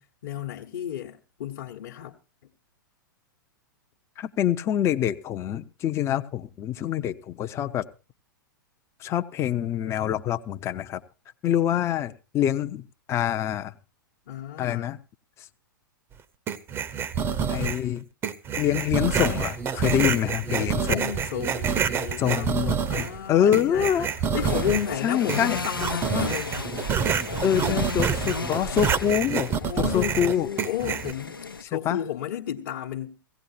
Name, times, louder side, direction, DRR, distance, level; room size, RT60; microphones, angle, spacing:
voice 1, 0.0-2.1 14.3-14.9 20.5-23.9 24.3-26.5 29.6-33.2, left 10 dB, 50° left, 1.2 m, -32 dB
voice 2, 4.2-7.9 9.0-11.0 11.4-13.7 14.6-15.0 17.5-18.0 18.6-21.0 22.2-24.1 25.0-25.6 27.4-29.5 29.8-30.5 31.6-32.0, left 10 dB, 25° left, 0.7 m, -25 dB
sound 1, 16.5-17.9 18.2-23.2 23.5-24.9 25.3-31.1, right 7 dB, 20° right, 0.8 m, -27 dB
sound 2, 20.8-31.6, left 4 dB, 80° left, 0.9 m, -36 dB
17.5 x 16.5 x 2.7 m
figure-of-eight pair, 105°, 11 cm